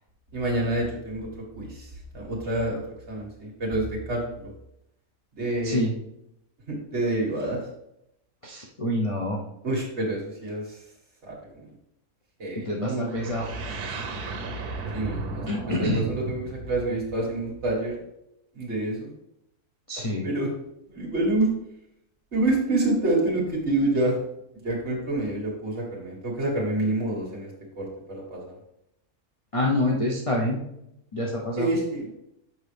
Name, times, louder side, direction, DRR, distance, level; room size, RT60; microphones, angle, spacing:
voice 1, 0.3-1.3 1.6-2.8 3.1-4.5 5.4-5.8 6.7-7.6 9.6-10.8 11.2-11.7 12.4-13.3 14.9-15.4 15.8-18.0 18.5-19.1 20.2-20.5 20.9-21.5 22.3-24.2 24.6-28.5 31.6-32.1, right 2 dB, 45° right, -2 dB, 2.0 m, -27 dB
voice 2, 8.4-9.4 12.6-13.5 15.5-16.0 19.9-20.3 29.5-30.6 31.1-31.7, left 1 dB, 35° left, -2 dB, 0.6 m, -27 dB
sound 1, 13.1-17.9, right 3 dB, 85° right, 1.4 m, -35 dB
6.6 x 5.4 x 3.4 m, 0.81 s
omnidirectional pair, 1.6 m